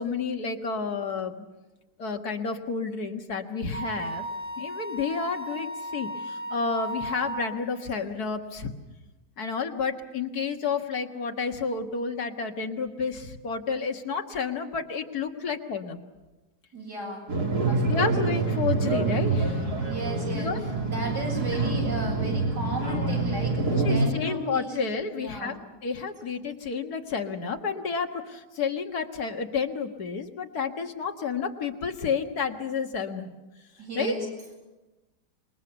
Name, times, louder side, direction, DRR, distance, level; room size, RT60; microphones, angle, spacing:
voice 1, 0.0-1.4 2.0-4.3 4.6-8.7 9.4-16.0 17.8-19.7 20.3-20.6 21.5-21.6 23.8-33.3 34.0-34.1, left 5 dB, 65° left, 4 dB, 2.1 m, -30 dB
Wind instrument woodwind instrument, 3.7-7.6, right 1 dB, 5° right, 2.2 m, -35 dB
voice 2, 16.7-17.3 17.6-18.2 19.8-20.5 20.8-24.8 25.2-25.6 33.8-34.3, right 2 dB, 90° right, -1 dB, 8.6 m, -34 dB
sound 1, 17.3-24.1, right 3 dB, 65° right, 3.5 m, -26 dB
26.0 x 22.0 x 7.0 m, 1.1 s
omnidirectional pair, 1.8 m